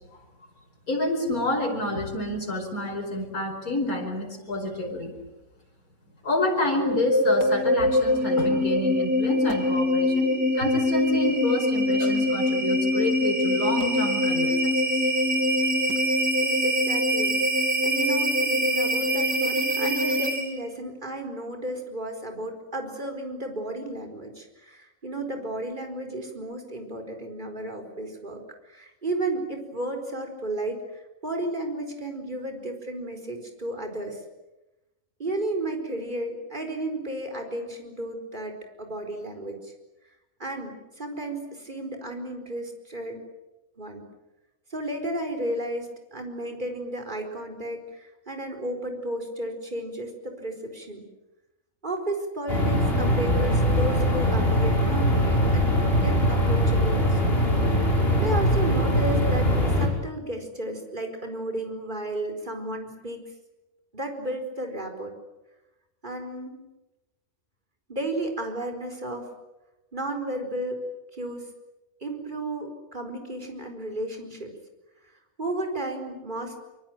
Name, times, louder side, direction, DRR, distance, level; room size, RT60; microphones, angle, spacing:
voice 1, 0.9-5.1 6.2-15.0, left 1 dB, 85° left, 0 dB, 5.6 m, -28 dB
sound 1, 6.7-20.7, left 1 dB, 85° right, 3.7 m, -24 dB
voice 2, 16.4-34.2 35.2-39.7 40.4-43.2 43.8-44.0 44.7-51.0 51.8-57.4 58.2-63.2 63.9-65.1 66.0-66.6 67.9-69.3 69.9-70.8 71.1-71.5 72.0-74.5 75.4-76.6, right 1 dB, 35° right, 4 dB, 4.7 m, -33 dB
sound 2, 52.5-59.9, equal, 40° left, 6.8 m, -22 dB
25.0 x 25.0 x 9.0 m, 0.98 s
omnidirectional pair, 1.5 m